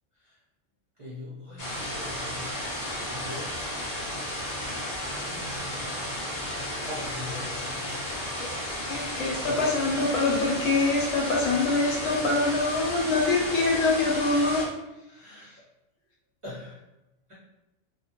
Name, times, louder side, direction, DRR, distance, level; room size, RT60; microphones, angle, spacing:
voice 1, 1.0-3.6 5.2-5.8 6.8-8.1 9.4-9.8 13.4-13.6 15.1-15.5 16.4-16.8 17.3-17.4, left 1 dB, 40° right, -8 dB, 0.5 m, -42 dB
sound 1, 1.6-14.7, left 1 dB, 50° left, 0.7 m, -33 dB
voice 2, 8.9-14.6 15.4-15.5, left 3 dB, 90° left, -2 dB, 1.0 m, -25 dB
2.2 x 2.1 x 2.8 m, 0.97 s
omnidirectional pair, 1.3 m